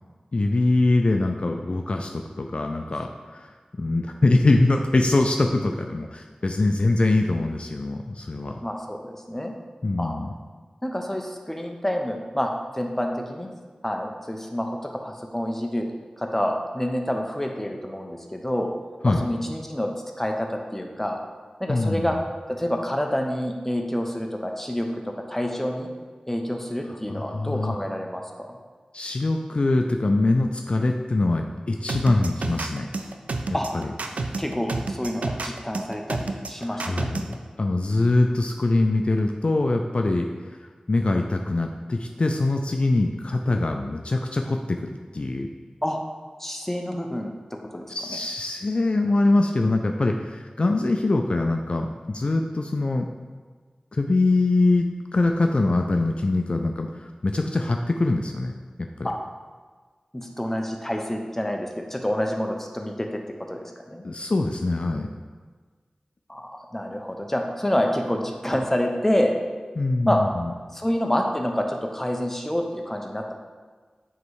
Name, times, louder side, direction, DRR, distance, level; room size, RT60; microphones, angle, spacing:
voice 1, 0.3-3.5 3.8-8.5 9.8-10.3 19.0-19.3 21.7-22.1 27.1-27.8 28.9-32.9 33.7-33.9 36.7-40.3 40.9-44.8 45.1-45.5 47.9-53.1 53.9-54.9 55.1-58.5 58.8-59.1 64.0-65.1 69.8-70.5, left 2 dB, 55° left, 3 dB, 0.4 m, -23 dB
voice 2, 8.6-9.5 10.0-10.1 10.8-13.5 13.8-15.9 16.2-18.7 19.0-19.9 20.2-21.2 21.6-22.1 22.5-24.9 25.3-25.9 26.3-28.6 33.5-33.7 34.4-36.8 45.8-46.0 46.4-47.8 48.1-48.2 59.0-59.2 60.1-63.2 63.5-64.1 66.3-69.3 70.0-70.2 70.7-73.3, equal, 15° left, 2 dB, 0.8 m, -28 dB
sound 1, 31.9-37.3, right 3 dB, 90° right, 0.4 m, -29 dB
7.9 x 3.1 x 4.7 m, 1.5 s
wide cardioid pair, 55°, 2 cm